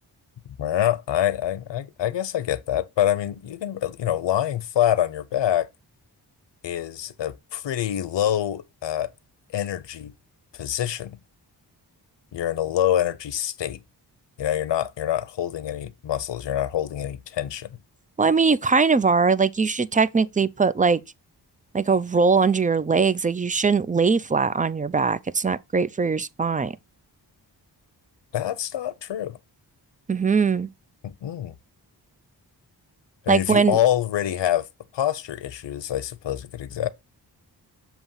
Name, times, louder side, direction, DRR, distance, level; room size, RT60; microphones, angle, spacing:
voice 1, 0.6-5.7 6.6-9.1 9.5-10.1 10.5-11.2 12.3-13.8 14.4-17.7 28.3-29.4 31.0-31.5 33.2-34.6 34.9-36.9, left 11 dB, 90° left, 0.7 m, -26 dB
voice 2, 18.2-21.0 21.7-26.7 30.1-30.7 33.3-33.8, right 5 dB, 20° right, 0.3 m, -21 dB
7.2 x 3.0 x 5.5 m
wide cardioid pair, 110°, 42 cm